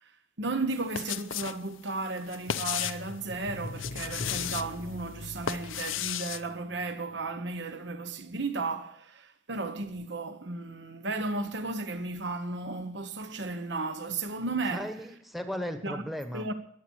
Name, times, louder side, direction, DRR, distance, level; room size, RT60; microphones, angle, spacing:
voice 1, 0.4-14.9 15.8-16.0 16.3-16.5, right 3 dB, 60° right, 1.1 m, -34 dB
sound 1, 0.7-1.6 1.9-3.1 3.7-4.7 5.2-6.4, left 10 dB, 80° left, 0.7 m, -34 dB
sound 2, 2.5-6.9 7.2-7.3, left 3 dB, 50° left, 0.9 m, -42 dB
voice 2, 14.7-16.5, equal, ahead, 1.2 m, -36 dB
21.0 x 8.4 x 6.3 m
head